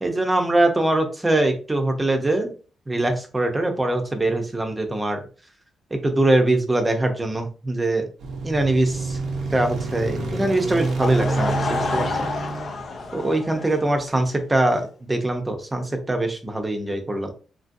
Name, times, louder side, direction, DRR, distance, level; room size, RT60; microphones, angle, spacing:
voice 1, 0.0-2.5 2.9-5.2 5.9-8.1 8.4-9.2 9.5-12.2 13.1-17.3, right 2 dB, 15° right, 4 dB, 0.6 m, -22 dB
sound 1, 8.2-13.7, right 3 dB, 70° right, 0.7 m, -29 dB
Laughter / Crowd, 10.8-14.3, left 4 dB, 50° left, 0.4 m, -29 dB
2.9 x 2.6 x 2.5 m, 0.37 s
cardioid pair, 100°, 0 cm